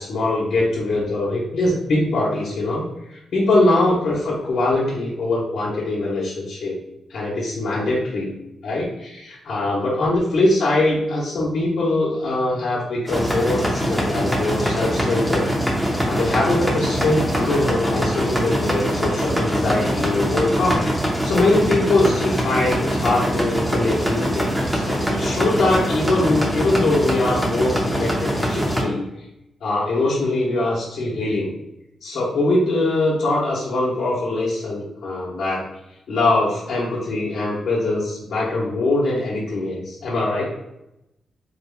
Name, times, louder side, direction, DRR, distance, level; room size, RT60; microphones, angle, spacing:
voice 1, 0.0-6.8 7.1-8.3 8.6-29.3 29.6-31.5 32.0-35.6 36.1-40.4, left 2 dB, 70° left, -7 dB, 1.1 m, -22 dB
sound 1, 13.1-28.8, equal, 5° right, 0.8 m, -23 dB
4.3 x 3.6 x 2.3 m, 0.88 s
wide cardioid pair, 140°, 0 cm